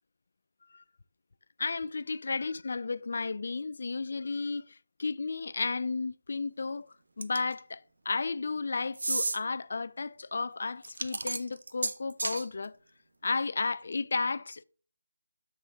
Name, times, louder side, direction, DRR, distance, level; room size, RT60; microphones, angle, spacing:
voice 1, 1.6-6.9 7.2-12.7 13.2-14.6, left 4 dB, 55° left, 0.3 m, -33 dB
sound 1, 7.2-7.6 8.9-9.4 10.8-12.4, right 3 dB, 65° right, 0.7 m, -32 dB
7.7 x 6.8 x 2.7 m
figure-of-eight pair, 155°, 0 cm